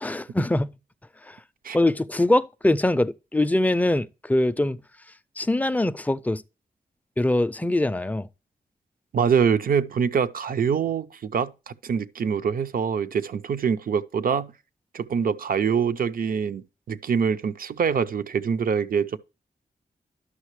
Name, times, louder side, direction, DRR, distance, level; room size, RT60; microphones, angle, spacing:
voice 1, 0.0-0.8 1.2-1.4 1.7-4.8 5.4-6.4 7.2-8.3, left 1 dB, 10° left, 0.4 m, -23 dB
voice 2, 9.1-14.5 14.9-19.2, right 6 dB, 65° right, 0.6 m, -24 dB
11.0 x 6.5 x 3.1 m
wide cardioid pair, 175°, 16 cm